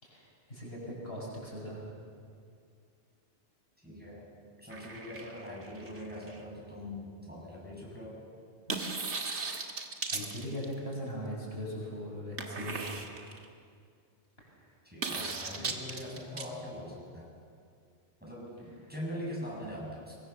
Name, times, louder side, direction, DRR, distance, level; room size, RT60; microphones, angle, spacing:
voice 1, 0.0-1.8 9.5-12.9 14.4-14.5, equal, 50° left, -4 dB, 6.7 m, -40 dB
voice 2, 3.8-4.3 4.6-8.2 14.8-17.3 18.2-20.2, left 1 dB, 5° right, -5 dB, 7.3 m, -42 dB
sound 1, 4.7-6.4 8.7-10.9 12.4-13.5 15.0-16.5, right 3 dB, 60° right, 2.1 m, -37 dB
24.0 x 23.0 x 7.1 m, 2.3 s
omnidirectional pair, 1.3 m